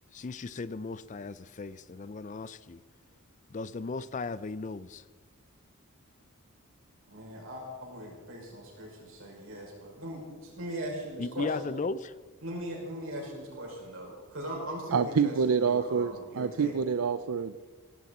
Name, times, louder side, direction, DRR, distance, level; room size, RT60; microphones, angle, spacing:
voice 1, 0.1-2.8 3.5-5.0 11.2-12.2, left 4 dB, 35° left, 16 dB, 0.4 m, -36 dB
voice 2, 7.1-11.7 12.4-16.7, equal, 65° right, -1 dB, 5.8 m, -39 dB
voice 3, 14.9-17.6, right 6 dB, 90° right, 12 dB, 0.5 m, -27 dB
17.0 x 16.0 x 4.3 m, 1.5 s
head